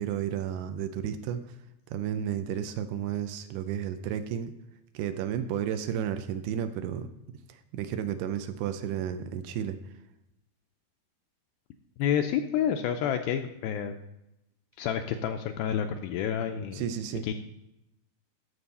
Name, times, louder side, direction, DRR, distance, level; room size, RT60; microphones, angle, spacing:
voice 1, 0.0-1.4 1.9-4.5 4.9-7.1 7.5-9.8 16.7-17.3, right 9 dB, 85° right, 9 dB, 2.6 m, -32 dB
voice 2, 12.0-14.0 14.8-16.9 17.2-17.3, left 9 dB, 85° left, 6 dB, 2.1 m, -29 dB
13.0 x 6.1 x 4.1 m, 0.89 s
omnidirectional pair, 4.7 m